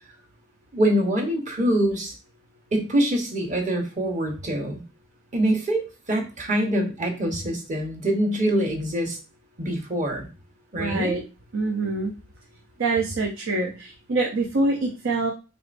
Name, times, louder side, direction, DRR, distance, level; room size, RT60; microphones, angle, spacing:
voice 1, 0.7-2.1 2.7-4.8 5.3-9.2 9.6-10.3 10.7-11.1, right 1 dB, 40° right, 1 dB, 1.1 m, -24 dB
voice 2, 10.8-11.2 11.5-12.1 12.8-15.3, right 3 dB, 85° right, 1 dB, 0.7 m, -25 dB
4.6 x 3.1 x 2.5 m, 0.31 s
head